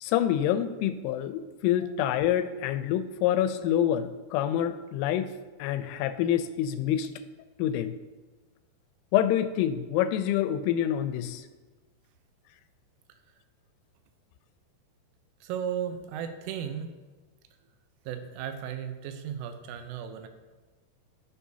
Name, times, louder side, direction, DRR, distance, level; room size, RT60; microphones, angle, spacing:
voice 1, 0.0-5.3 5.6-7.1 7.6-8.0 9.1-11.4, left 11 dB, 90° left, 11 dB, 3.1 m, -27 dB
voice 2, 15.4-16.9 18.1-20.3, right 9 dB, 90° right, 7 dB, 3.3 m, -35 dB
14.5 x 6.7 x 2.8 m, 1.3 s
omnidirectional pair, 5.5 m